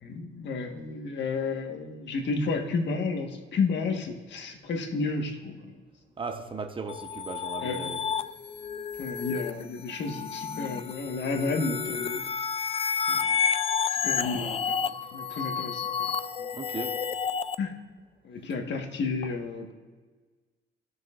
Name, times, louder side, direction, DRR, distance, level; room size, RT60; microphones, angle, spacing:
voice 1, 0.0-5.8 7.6-7.9 9.0-12.3 13.1-13.3 14.0-16.1 16.4-16.5 17.6-17.7 18.2-19.7, left 4 dB, 65° left, 1.5 m, -32 dB
voice 2, 6.2-8.0 16.5-17.0, right 4 dB, 25° right, 0.9 m, -37 dB
sound 1, 6.9-17.6, left 6 dB, 30° left, 0.3 m, -31 dB
17.0 x 6.4 x 2.5 m
cardioid pair, 90°, 20 cm